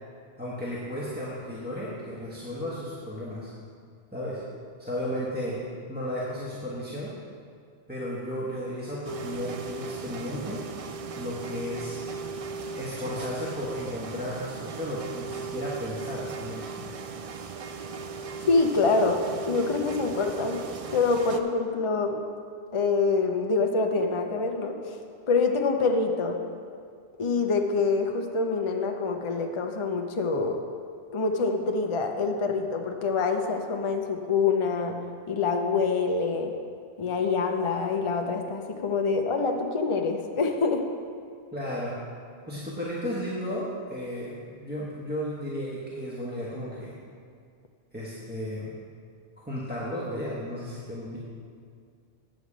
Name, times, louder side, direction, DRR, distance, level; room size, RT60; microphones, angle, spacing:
voice 1, 0.4-3.5 4.1-4.4 4.8-5.6 5.9-7.1 7.9-10.6 11.1-12.0 12.8-16.8 41.5-42.0 42.5-47.0 47.9-48.7 49.4-51.2, equal, 10° right, -8 dB, 1.2 m, -34 dB
sound 1, 9.0-21.4, right 4 dB, 50° right, 0.4 m, -37 dB
voice 2, 18.5-22.2 22.7-25.0 25.3-26.4 27.2-30.6 31.1-34.9 35.3-36.5 37.0-40.8, left 4 dB, 35° left, 3 dB, 0.6 m, -26 dB
9.2 x 5.0 x 7.3 m, 2.2 s
omnidirectional pair, 1.1 m